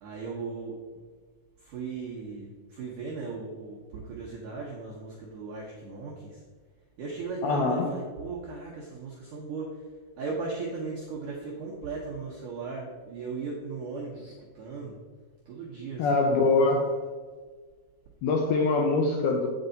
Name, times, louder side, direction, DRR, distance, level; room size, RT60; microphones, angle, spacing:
voice 1, 0.0-0.8 1.6-6.4 7.0-9.9 10.2-15.0 15.5-16.7, right 4 dB, 70° right, -3 dB, 2.0 m, -37 dB
voice 2, 7.4-7.9 16.0-16.9 18.2-19.5, left 3 dB, 85° left, 2 dB, 2.2 m, -23 dB
8.1 x 8.0 x 3.9 m, 1.5 s
omnidirectional pair, 5.2 m